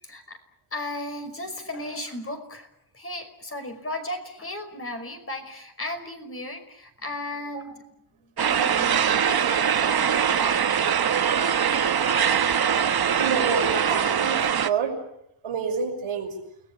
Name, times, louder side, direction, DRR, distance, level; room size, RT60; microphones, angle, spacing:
voice 1, 0.0-0.4 0.7-2.7 2.9-7.8 8.4-10.0 11.1-11.4 11.7-12.6, left 1 dB, 25° left, 6 dB, 5.5 m, -36 dB
sound 1, 8.4-14.7, right 8 dB, 50° right, 1.2 m, -22 dB
voice 2, 13.2-15.0 15.4-16.3, right 6 dB, 85° right, 2 dB, 5.9 m, -28 dB
29.5 x 20.0 x 8.6 m, 0.78 s
wide cardioid pair, 135°, 48 cm